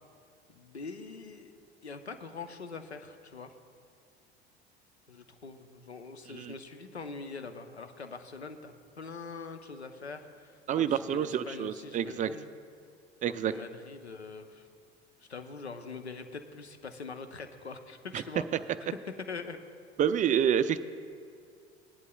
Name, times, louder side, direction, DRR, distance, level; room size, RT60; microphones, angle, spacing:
voice 1, 0.5-3.5 5.1-12.5 13.2-14.7 15.3-19.0 19.3-19.6, left 4 dB, 90° left, 8 dB, 0.7 m, -43 dB
voice 2, 10.7-12.3 13.2-13.5 18.1-18.2 20.0-20.8, right 9 dB, 25° right, 13 dB, 0.4 m, -28 dB
19.5 x 11.0 x 2.3 m, 2.2 s
figure-of-eight pair, 70°, 32 cm